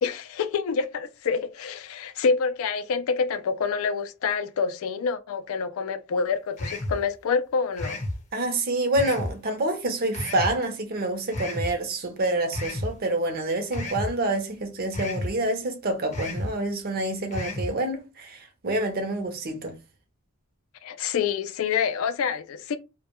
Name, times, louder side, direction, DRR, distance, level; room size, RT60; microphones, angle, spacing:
voice 1, 0.0-8.0 20.8-22.8, left 5 dB, 65° left, 0.3 m, -27 dB
sound 1, 6.6-7.0 7.8-8.2 8.9-9.3 10.1-10.5 11.3-11.7 12.5-12.9 13.7-14.1 14.9-15.3 16.1-16.5 17.3-17.7, left 1 dB, 35° left, 0.7 m, -31 dB
voice 2, 8.3-19.8, right 2 dB, 45° right, 0.6 m, -27 dB
2.1 x 2.1 x 2.9 m
head